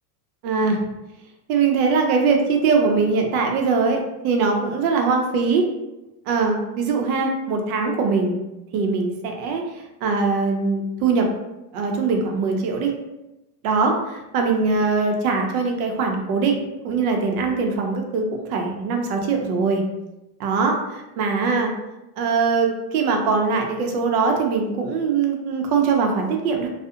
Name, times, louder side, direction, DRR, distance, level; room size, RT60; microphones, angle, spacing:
voice 1, 0.4-0.8 1.5-5.7 6.3-8.4 8.7-11.3 11.7-12.9 13.6-19.8 20.4-21.7 22.2-26.7, right 4 dB, 65° right, 3 dB, 0.6 m, -22 dB
2.6 x 2.0 x 2.4 m, 0.96 s
supercardioid pair, 175°, 48 cm